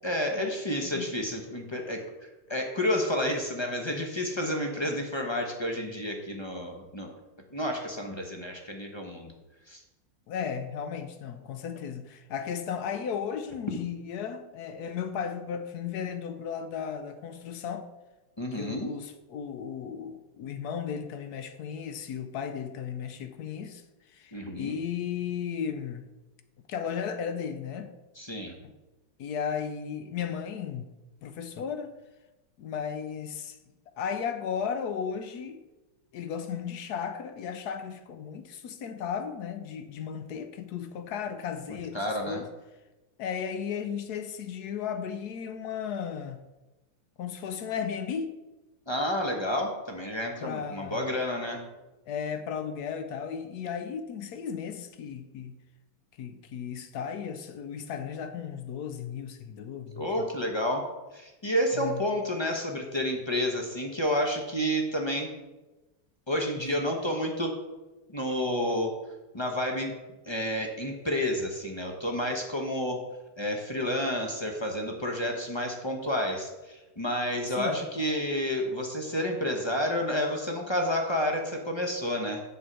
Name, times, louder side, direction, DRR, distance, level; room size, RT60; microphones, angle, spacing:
voice 1, 0.0-7.1 7.5-9.3 9.7-9.8 18.4-18.9 24.3-24.8 28.2-28.5 41.7-42.4 48.9-51.6 60.0-65.3 66.3-67.5 68.1-68.9 69.3-70.0 70.3-73.0 73.4-82.4, left 1 dB, 35° left, 0.4 m, -30 dB
voice 2, 10.3-17.9 18.5-23.8 24.1-26.1 26.7-27.9 29.2-30.9 31.2-31.9 32.6-33.6 34.0-35.6 36.1-42.0 42.3-42.5 43.2-46.4 47.2-48.4 50.4-51.1 52.1-55.6 56.2-60.0 61.7-62.0 77.5-77.8, left 7 dB, 85° left, 0.8 m, -35 dB
8.0 x 5.3 x 7.5 m
omnidirectional pair, 2.4 m